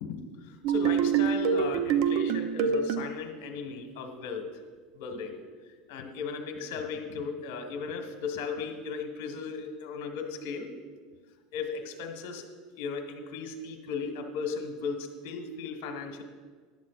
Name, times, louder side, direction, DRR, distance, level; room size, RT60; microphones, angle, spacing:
voice 1, 0.0-4.6 4.9-5.4 5.9-10.7 11.5-12.5 12.8-16.2, left 5 dB, 80° left, 4 dB, 1.4 m, -36 dB
sound 1, 0.6-3.1, right 7 dB, 55° right, 0.6 m, -26 dB
15.0 x 11.0 x 2.4 m, 1.5 s
supercardioid pair, 155°, 0 cm